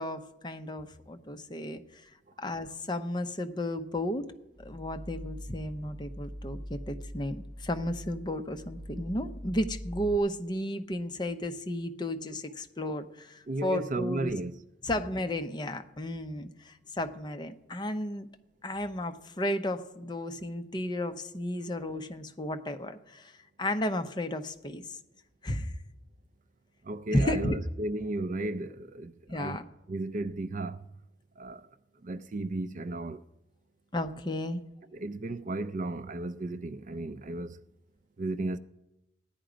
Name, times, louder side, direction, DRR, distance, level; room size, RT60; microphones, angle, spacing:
voice 1, 0.0-2.1 2.4-4.3 4.6-14.3 14.8-18.3 18.6-23.3 23.6-25.0 25.4-25.8 27.1-27.6 29.3-29.6 33.9-34.6, left 1 dB, 25° left, 0.7 m, -33 dB
sound 1, 4.5-10.2, equal, 5° right, 1.3 m, -43 dB
voice 2, 13.5-14.5 26.9-29.6 29.9-30.8 31.4-31.6 32.0-33.2 34.9-37.6 38.2-38.6, right 2 dB, 40° right, 0.4 m, -34 dB
15.5 x 10.5 x 5.0 m
head